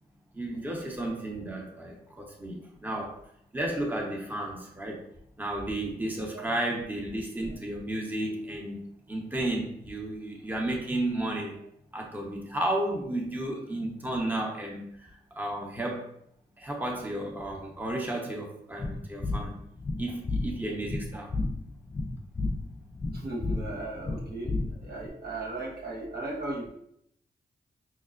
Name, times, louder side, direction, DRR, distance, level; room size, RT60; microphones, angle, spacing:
voice 1, 0.3-3.2 3.5-5.0 5.4-11.6 11.9-16.1 16.6-19.6 20.0-21.3, right 1 dB, 10° right, -1 dB, 0.8 m, -33 dB
sound 1, 18.8-25.1, left 2 dB, 30° left, 0.4 m, -32 dB
voice 2, 23.1-26.7, right 2 dB, 80° right, -4 dB, 1.1 m, -36 dB
5.6 x 2.1 x 2.4 m, 0.71 s
cardioid pair, 55°, 17 cm